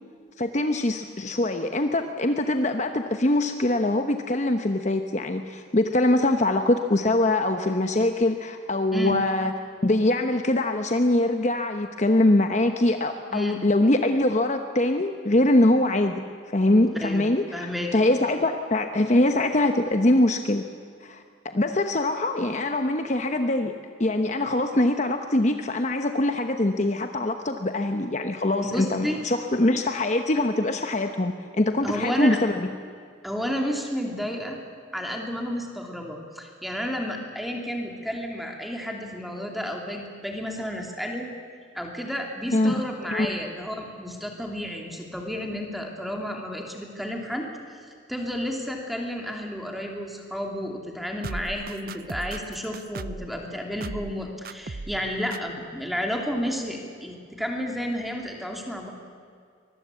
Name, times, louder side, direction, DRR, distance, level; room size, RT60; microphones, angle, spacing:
voice 1, 0.4-9.5 9.8-16.2 16.5-20.6 21.0-23.7 24.0-32.7 42.5-42.8 43.1-43.4, left 1 dB, 35° left, 6 dB, 0.9 m, -23 dB
voice 2, 17.5-17.9 28.6-29.2 31.8-32.4 33.2-34.6 34.9-41.3 41.7-47.5 48.1-58.9, equal, ahead, 1 dB, 2.9 m, -31 dB
sound 1, 51.2-53.3 53.8-54.2 54.4-55.0 55.3-55.4, right 3 dB, 50° right, 0.6 m, -36 dB
24.0 x 21.0 x 8.4 m, 2.2 s
head